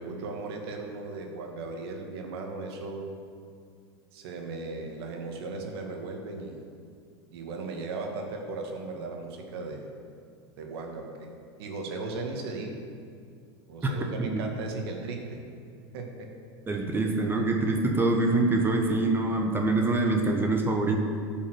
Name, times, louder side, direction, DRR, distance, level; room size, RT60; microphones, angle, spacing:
voice 1, 0.0-3.1 4.1-6.6 7.3-9.9 10.6-11.3 11.6-12.8 13.7-15.5 15.9-16.3, right 3 dB, 70° right, 2 dB, 1.9 m, -37 dB
voice 2, 16.7-21.0, right 2 dB, 15° right, 2 dB, 1.1 m, -25 dB
11.0 x 5.7 x 7.9 m, 2.2 s
supercardioid pair, 120°, 14 cm